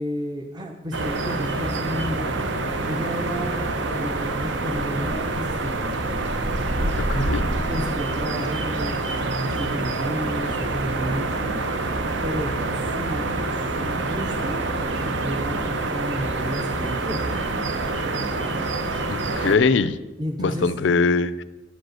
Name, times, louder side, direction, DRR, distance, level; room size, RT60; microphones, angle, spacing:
voice 1, 0.0-2.5 2.8-5.7 7.1-11.4 12.2-14.8 15.2-17.2 20.2-20.7, equal, 20° right, 2 dB, 0.6 m, -32 dB
sound 1, 0.9-19.6, right 2 dB, 65° right, 0.8 m, -26 dB
voice 2, 7.1-7.4 19.1-20.0 20.4-21.4, left 4 dB, 65° left, 15 dB, 0.4 m, -21 dB
9.9 x 5.2 x 7.7 m, 1.1 s
head